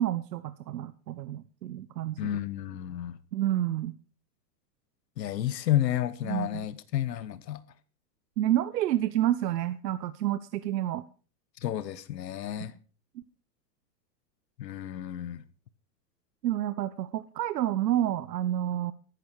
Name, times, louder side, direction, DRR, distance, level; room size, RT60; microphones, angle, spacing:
voice 1, 0.0-2.3 3.3-3.9 6.2-6.7 8.4-11.0 12.6-12.7 13.1-13.2 16.4-18.9, right 12 dB, 75° right, 1.0 m, -29 dB
voice 2, 2.2-3.2 5.2-7.6 11.6-12.7 14.6-15.4, left 12 dB, 80° left, 1.3 m, -31 dB
15.0 x 12.0 x 4.7 m
hypercardioid pair, 145°, 49 cm